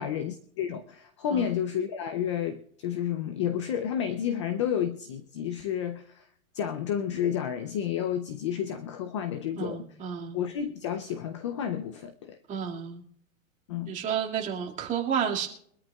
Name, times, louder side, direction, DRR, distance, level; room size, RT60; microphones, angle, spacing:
voice 1, 0.0-6.3 6.5-9.9 10.3-12.4 13.7-14.0, left 9 dB, 25° left, 0.4 m, -31 dB
voice 2, 9.6-10.4 12.5-13.0 13.9-15.5, right 8 dB, 15° right, 2.1 m, -31 dB
23.5 x 13.0 x 2.3 m
hypercardioid pair, 155°, 42 cm